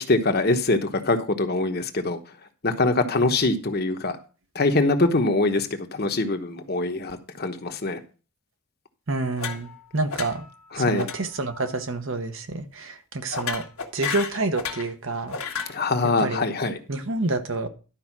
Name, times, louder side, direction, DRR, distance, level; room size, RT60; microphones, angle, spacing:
voice 1, 0.0-2.2 2.6-4.2 4.5-8.0 10.7-11.0 15.7-16.8, left 2 dB, 45° left, 1.1 m, -23 dB
voice 2, 9.1-10.4 10.8-13.6 13.9-15.4 16.2-16.4 16.9-17.7, right 2 dB, 60° right, 1.1 m, -28 dB
sound 1, 9.4-9.8 10.1-10.5 11.0-11.2 11.5-11.8 13.3-14.9 15.3-15.8, left 6 dB, 80° left, 1.6 m, -32 dB
11.5 x 5.0 x 6.0 m
head